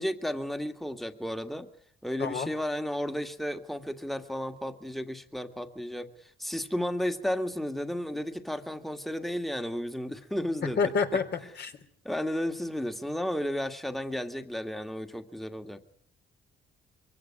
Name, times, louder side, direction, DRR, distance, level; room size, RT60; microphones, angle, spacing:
voice 1, 0.0-1.7 2.0-6.1 6.4-11.2 12.0-15.8, equal, ahead, 7 dB, 1.9 m, -33 dB
voice 2, 2.2-2.5 10.8-11.2 11.6-11.7, left 5 dB, 55° left, 6 dB, 3.4 m, -27 dB
23.5 x 16.5 x 9.8 m, 0.63 s
cardioid pair, 90°, 20 cm